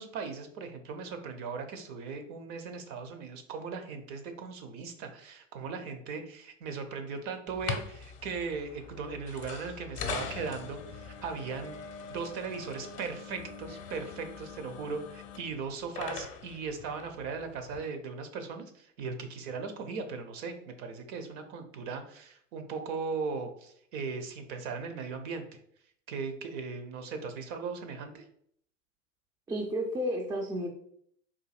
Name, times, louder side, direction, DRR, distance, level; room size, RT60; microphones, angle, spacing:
voice 1, 0.0-11.7 12.1-25.4 26.1-28.2, right 5 dB, 50° right, 7 dB, 0.6 m, -38 dB
sound 1, 7.5-17.8, left 6 dB, 40° left, 0.7 m, -42 dB
voice 2, 29.5-30.7, equal, 10° right, 2 dB, 0.4 m, -32 dB
3.9 x 2.6 x 2.3 m, 0.66 s
hypercardioid pair, 85°, 38 cm